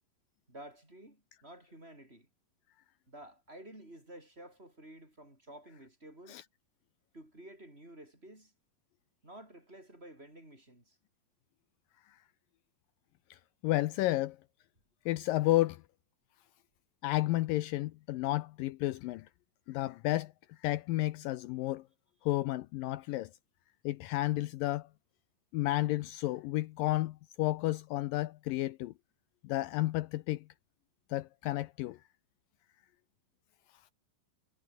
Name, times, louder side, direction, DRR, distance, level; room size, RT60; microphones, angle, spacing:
voice 1, 0.5-2.3 3.1-6.4 7.1-8.5 9.2-11.0, right 1 dB, 15° right, 6.2 m, -52 dB
voice 2, 13.3-14.4 15.1-15.8 17.0-19.3 19.7-20.3 20.6-21.8 22.2-23.3 23.8-24.9 25.5-28.9 29.4-30.4 31.1-32.0, left 17 dB, 75° left, 2.3 m, -32 dB
omnidirectional pair, 4.2 m